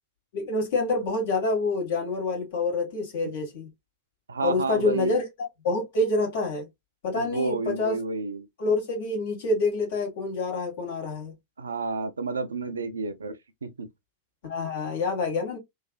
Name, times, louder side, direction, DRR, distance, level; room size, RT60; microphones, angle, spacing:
voice 1, 0.3-3.7 4.4-5.2 5.6-6.7 7.0-8.0 8.6-11.3 14.4-15.6, left 3 dB, 55° left, 1.6 m, -27 dB
voice 2, 4.3-5.1 7.1-8.5 11.6-13.3 13.6-13.9, right 4 dB, 75° right, 0.4 m, -30 dB
3.2 x 2.4 x 2.3 m
figure-of-eight pair, 90°, 0 cm